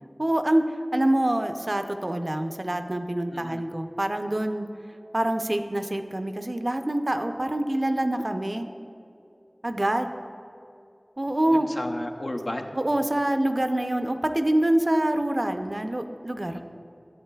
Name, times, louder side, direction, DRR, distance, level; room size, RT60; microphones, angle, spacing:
voice 1, 0.2-0.6 0.9-4.7 5.1-8.7 9.6-10.1 11.2-11.7 12.8-16.6, right 1 dB, 50° right, 7 dB, 0.4 m, -25 dB
voice 2, 3.3-3.6 11.5-12.8 16.5-16.6, left 1 dB, 65° left, 3 dB, 0.5 m, -34 dB
11.0 x 8.4 x 2.2 m, 2.6 s
wide cardioid pair, 45°, 0 cm